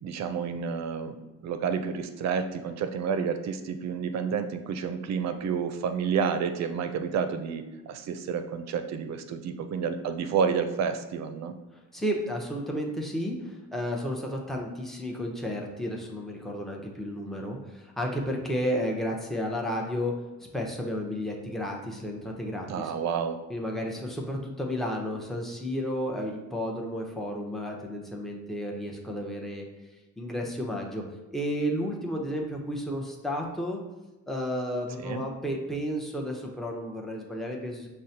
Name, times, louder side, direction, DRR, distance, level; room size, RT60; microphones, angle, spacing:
voice 1, 0.0-1.2 1.4-11.5 22.7-23.4 35.0-35.2, right 6 dB, 60° right, 9 dB, 0.5 m, -30 dB
voice 2, 11.7-20.1 20.4-22.9 23.5-29.6 30.2-31.0 31.3-33.8 34.3-37.9, equal, ahead, 0 dB, 0.7 m, -32 dB
6.1 x 2.1 x 2.7 m, 1.1 s
cardioid pair, 90°, 30 cm